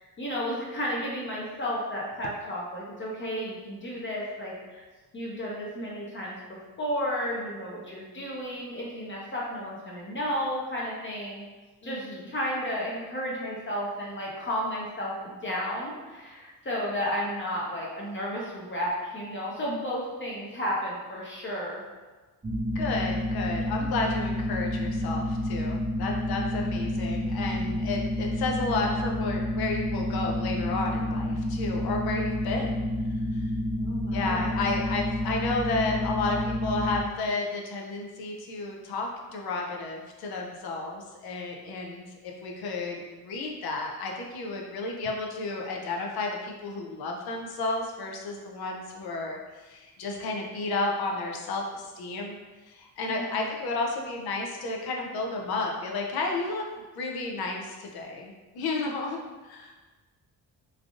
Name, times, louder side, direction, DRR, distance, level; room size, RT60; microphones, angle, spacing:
voice 1, 0.0-4.8 5.1-6.4 6.8-11.4 11.8-21.8 33.8-34.5 53.1-53.4, equal, 30° left, -4 dB, 0.7 m, -33 dB
voice 2, 11.8-12.3 22.7-32.8 33.3-33.5 34.1-52.4 52.6-56.7 56.9-59.7, left 3 dB, 75° left, 0 dB, 0.6 m, -32 dB
sound 1, 22.4-37.0, left 1 dB, 15° right, 0.6 m, -29 dB
3.2 x 2.4 x 2.5 m, 1.2 s
cardioid pair, 95°, 38 cm